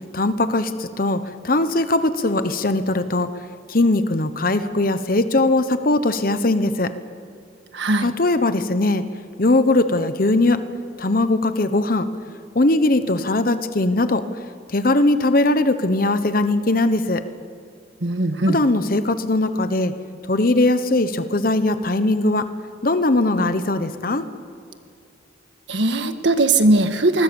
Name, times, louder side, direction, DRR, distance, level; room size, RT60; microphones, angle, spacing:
voice 1, 0.1-3.3 3.7-6.9 8.0-9.0 9.4-10.6 11.0-12.1 12.5-14.2 14.7-17.2 18.5-19.9 20.2-22.5 22.8-24.3, left 2 dB, 50° left, 10 dB, 1.0 m, -20 dB
voice 2, 7.7-8.1 18.0-18.6 25.7-27.2, right 2 dB, 75° right, 8 dB, 1.7 m, -19 dB
25.5 x 21.0 x 7.1 m, 2.4 s
head